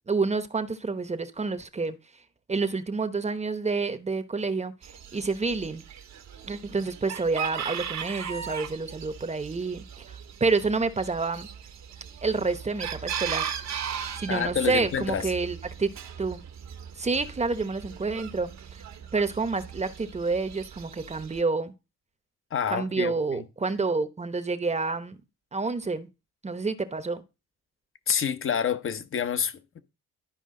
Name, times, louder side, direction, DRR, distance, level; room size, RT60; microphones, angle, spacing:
voice 1, 0.1-2.0 2.5-4.7 5.1-5.8 6.4-11.5 12.2-13.5 14.2-15.9 16.2-16.4 17.0-18.8 19.1-21.7 22.7-25.2 25.5-26.1 26.4-27.2, right 4 dB, 20° right, 0.9 m, -28 dB
Chicken rooster, 4.8-21.4, right 8 dB, 65° right, 1.3 m, -38 dB
voice 2, 14.3-15.3 22.5-23.4 28.1-29.8, left 7 dB, 45° left, 1.0 m, -28 dB
12.5 x 4.9 x 3.8 m
cardioid pair, 90°, 30 cm